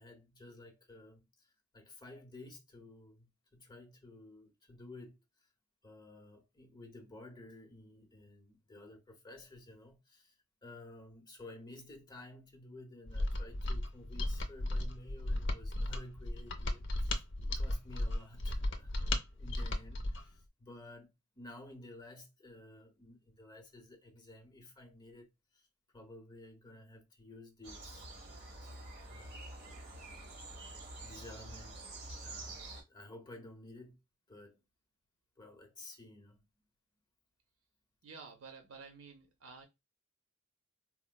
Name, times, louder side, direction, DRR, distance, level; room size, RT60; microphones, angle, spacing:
voice 1, 0.0-5.5 5.8-25.7 25.9-28.1 28.6-28.8 29.1-29.7 31.0-31.8 32.2-34.0 34.3-34.6 35.4-36.4, left 2 dB, 20° left, 0.8 m, -53 dB
Mechanisms, 13.1-20.3, left 1 dB, 60° left, 0.6 m, -35 dB
sound 1, 27.6-32.8, right 2 dB, 55° right, 1.3 m, -47 dB
voice 2, 38.0-39.6, right 4 dB, 80° right, 0.7 m, -51 dB
4.2 x 2.1 x 2.2 m
head